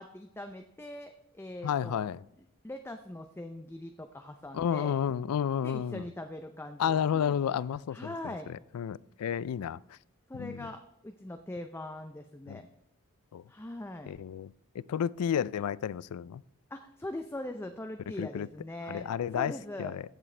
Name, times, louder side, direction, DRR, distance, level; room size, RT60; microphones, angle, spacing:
voice 1, 0.0-2.0 2.4-5.0 5.6-7.4 7.9-8.6 10.3-12.7 13.5-14.2 16.7-20.0, left 1 dB, 10° left, 0.5 m, -42 dB
voice 2, 1.6-2.2 4.5-6.0 6.8-8.3 8.7-9.8 10.4-10.7 12.5-12.6 13.3-13.4 14.1-14.5 14.9-16.4 18.2-18.5 18.9-19.5 19.8-20.0, left 8 dB, 90° left, 0.3 m, -31 dB
15.0 x 7.5 x 3.3 m
head